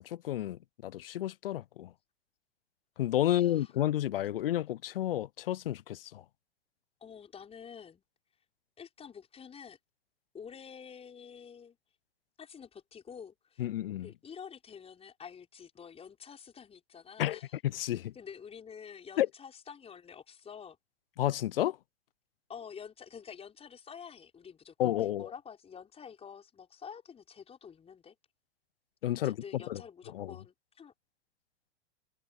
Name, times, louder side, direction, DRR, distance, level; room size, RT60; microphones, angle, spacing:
voice 1, 0.0-1.9 3.0-6.2 13.6-14.1 17.2-18.1 19.2-19.3 21.2-21.8 24.8-25.3 29.0-29.8 30.1-30.3, left 13 dB, 55° left, 0.7 m, -31 dB
voice 2, 3.2-3.7 7.0-8.0 8.8-9.8 10.3-11.8 12.4-13.7 14.0-17.6 18.1-20.8 22.5-28.2 29.2-30.9, left 7 dB, 15° left, 5.3 m, -48 dB
figure-of-eight pair, 95°, 34 cm